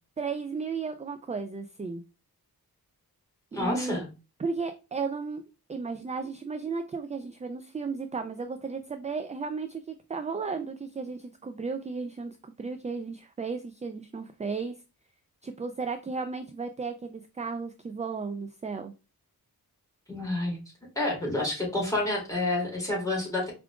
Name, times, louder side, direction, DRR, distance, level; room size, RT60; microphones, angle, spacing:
voice 1, 0.2-2.0 3.5-4.0 4.4-5.4 5.7-14.7 15.4-18.9, right 4 dB, 20° right, 8 dB, 0.3 m, -34 dB
voice 2, 3.5-4.0 20.1-20.6 21.0-23.5, left 2 dB, 10° left, -3 dB, 2.5 m, -29 dB
4.7 x 3.7 x 2.3 m, 0.30 s
wide cardioid pair, 95°, 37 cm